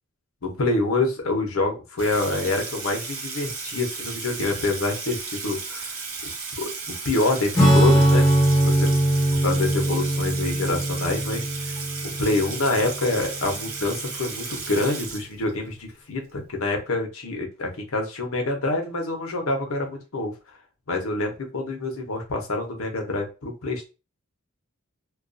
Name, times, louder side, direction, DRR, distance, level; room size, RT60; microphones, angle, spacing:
voice 1, 0.4-6.0 6.6-8.9 9.4-11.8 12.0-20.3 20.9-23.9, left 2 dB, 70° left, 2 dB, 0.7 m, -26 dB
Water tap faucet / Sink (filling or washing), 2.0-15.7, right 4 dB, 80° right, 0.8 m, -34 dB
Acoustic guitar / Strum, 7.5-13.5, right 1 dB, 15° left, 0.6 m, -21 dB
2.3 x 2.2 x 2.5 m, 0.31 s
head